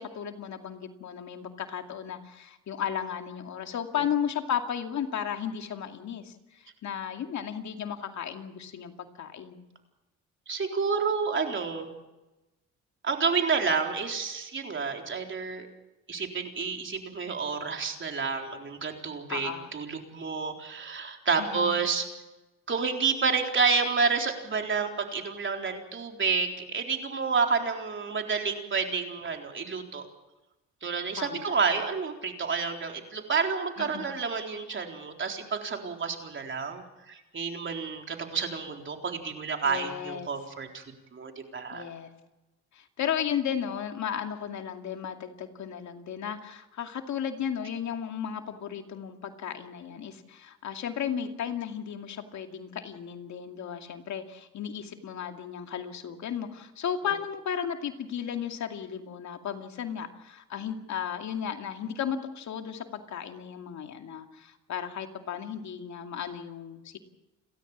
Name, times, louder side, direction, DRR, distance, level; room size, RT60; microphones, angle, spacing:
voice 1, 0.0-9.6 19.3-19.7 21.4-21.8 31.2-31.5 33.8-34.1 39.6-40.3 41.7-42.1 42.7-67.0, left 8 dB, 65° left, 5 dB, 2.4 m, -34 dB
voice 2, 10.5-11.9 13.0-15.7 16.1-22.1 22.7-30.0 30.8-40.8 41.1-41.9, right 5 dB, 40° right, 3 dB, 4.0 m, -29 dB
30.0 x 13.5 x 7.3 m, 1.0 s
cardioid pair, 90°, 30 cm